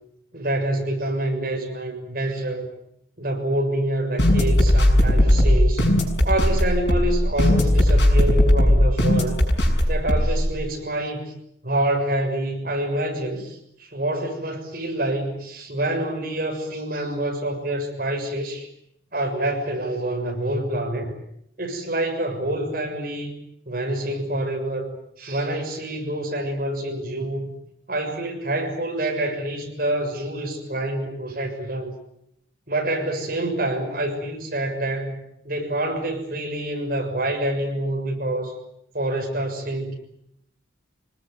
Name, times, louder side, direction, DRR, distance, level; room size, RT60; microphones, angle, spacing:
voice 1, 0.3-2.7 3.2-5.8 6.2-9.4 9.9-11.3 11.6-18.7 19.1-21.1 21.6-23.3 23.6-27.5 27.9-31.9 32.7-38.6 38.9-40.0, right 1 dB, 50° right, 2 dB, 6.8 m, -27 dB
sound 1, 4.2-10.5, left 1 dB, 65° left, 6.9 m, -18 dB
26.0 x 20.0 x 9.8 m, 0.75 s
head